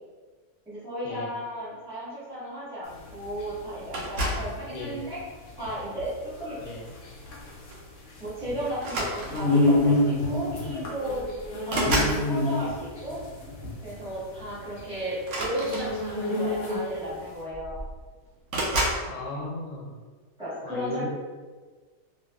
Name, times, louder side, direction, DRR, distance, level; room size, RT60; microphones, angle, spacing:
voice 1, 0.6-5.2 5.6-6.6 8.2-11.2 11.6-13.2 13.8-17.8 20.4-21.1, equal, 5° right, -13 dB, 1.0 m, -34 dB
sound 1, 2.9-17.1, left 2 dB, 60° left, 0.8 m, -28 dB
sound 2, 3.9-4.6 5.4-5.8 7.3-7.4 7.7-7.9 8.8-9.6 10.6-10.7 11.0-12.2 15.2-16.3 17.2-17.3 17.5-18.0 18.5-19.1, right 1 dB, 70° right, 0.7 m, -29 dB
voice 2, 19.1-20.0 20.6-21.1, left 3 dB, 80° left, -1 dB, 1.2 m, -36 dB
2.7 x 2.5 x 2.3 m, 1.4 s
omnidirectional pair, 1.8 m